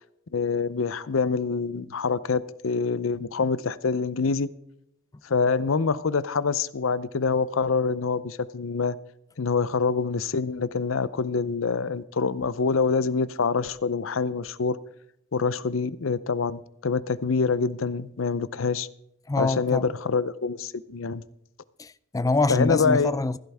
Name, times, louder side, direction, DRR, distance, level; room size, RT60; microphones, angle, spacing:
voice 1, 0.3-4.5 5.2-9.0 9.4-14.8 15.3-18.9 19.4-21.2 22.5-23.1, left 5 dB, 90° left, 0.6 m, -25 dB
voice 2, 19.3-19.9 21.8-23.4, left 3 dB, 15° left, 0.4 m, -25 dB
15.5 x 11.5 x 3.5 m
head